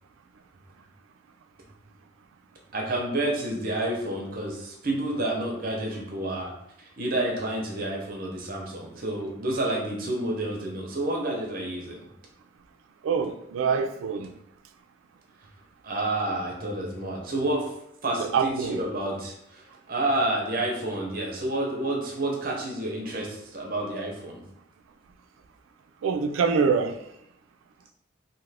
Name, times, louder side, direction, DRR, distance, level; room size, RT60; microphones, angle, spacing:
voice 1, 2.7-6.5 7.0-12.0 15.8-17.7 18.0-24.4, right 1 dB, 45° right, 0.7 m, -29 dB
voice 2, 13.0-14.3 18.2-18.8 26.0-27.0, right 5 dB, 80° right, 0.3 m, -25 dB
2.7 x 2.5 x 3.2 m
head